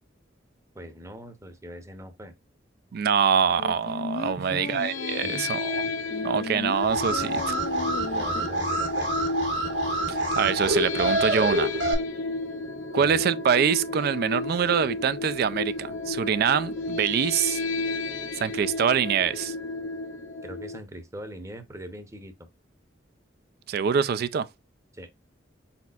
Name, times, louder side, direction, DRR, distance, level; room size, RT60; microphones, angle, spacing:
voice 1, 0.7-2.3 4.4-4.8 5.2-5.5 8.1-9.1 13.0-13.2 20.4-22.5 24.9-25.1, equal, 15° right, 0.8 m, -41 dB
voice 2, 2.9-5.9 6.2-7.6 10.1-11.7 12.9-17.6 18.4-19.5 23.7-24.5, right 7 dB, 55° right, 0.3 m, -25 dB
sound 1, 3.6-5.5 6.1-8.5 8.8-8.9, left 4 dB, 50° left, 0.3 m, -36 dB
sound 2, 4.7-20.8, left 3 dB, 80° left, 0.8 m, -32 dB
Alarm, 6.8-11.9, right 1 dB, 70° right, 1.5 m, -27 dB
4.4 x 4.2 x 2.3 m
head